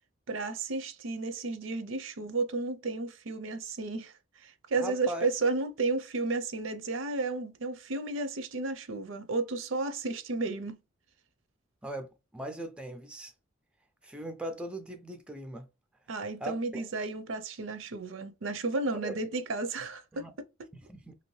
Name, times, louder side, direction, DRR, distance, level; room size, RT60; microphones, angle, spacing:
voice 1, 0.3-4.1 4.4-10.8 16.1-20.3 20.6-20.7, right 3 dB, 75° right, 0.5 m, -33 dB
voice 2, 4.8-5.3 11.8-13.3 14.0-15.7 16.4-16.9 19.0-19.2 20.1-20.3 20.7-21.2, right 1 dB, 5° right, 0.3 m, -39 dB
2.9 x 2.6 x 3.1 m
head